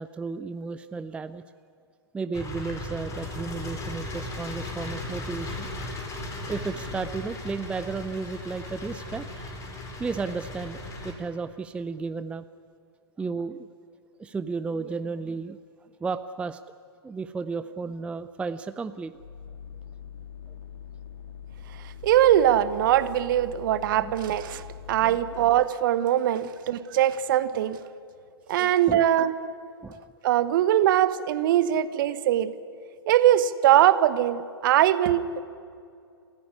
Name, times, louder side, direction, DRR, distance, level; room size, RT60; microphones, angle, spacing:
voice 1, 0.0-1.4 2.1-5.7 6.5-9.3 10.0-10.8 11.0-12.5 13.2-13.7 14.2-15.6 16.0-16.6 17.0-19.1 24.0-24.1 25.0-25.2 26.4-26.5 27.5-27.6 28.6-29.0 29.8-30.0, right 4 dB, 10° right, 12 dB, 0.5 m, -33 dB
sound 1, 2.3-11.1, left 2 dB, 20° left, 4.5 m, -37 dB
sound 2, 19.1-25.7, left 8 dB, 75° left, 2.5 m, -43 dB
voice 2, 22.0-24.6 24.9-27.8 28.5-29.3 30.2-32.5 33.1-35.4, right 12 dB, 50° right, 14 dB, 1.2 m, -21 dB
28.0 x 16.0 x 9.8 m, 2.4 s
figure-of-eight pair, 110°, 14 cm